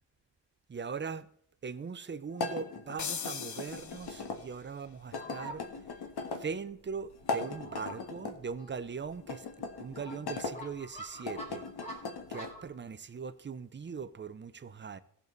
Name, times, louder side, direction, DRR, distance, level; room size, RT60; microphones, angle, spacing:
voice 1, 0.7-1.3 1.6-5.6 6.4-9.5 9.8-11.6 12.3-15.0, right 5 dB, 30° right, 0.6 m, -40 dB
sound 1, 2.3-4.4 5.1-6.4 7.1-8.4 9.2-10.5 11.1-12.5, left 4 dB, 80° left, 1.9 m, -39 dB
sound 2, 3.0-4.6, left 7 dB, 50° left, 0.8 m, -40 dB
Fowl, 3.7-12.7, equal, 15° left, 2.8 m, -49 dB
18.5 x 6.9 x 4.0 m
wide cardioid pair, 160°, 39 cm